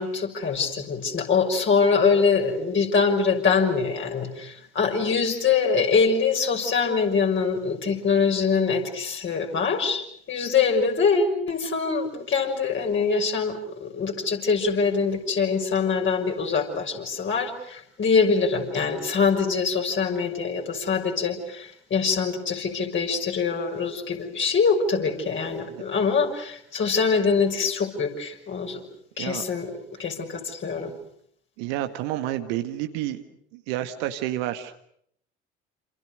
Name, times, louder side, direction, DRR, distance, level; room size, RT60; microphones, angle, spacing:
voice 1, 0.0-28.8 29.2-29.7 30.0-30.9, left 5 dB, 35° left, 2 dB, 6.3 m, -24 dB
voice 2, 31.6-33.2 33.5-34.8, right 13 dB, 60° right, 8 dB, 1.8 m, -29 dB
28.5 x 28.0 x 6.5 m, 0.68 s
figure-of-eight pair, 60°, 33 cm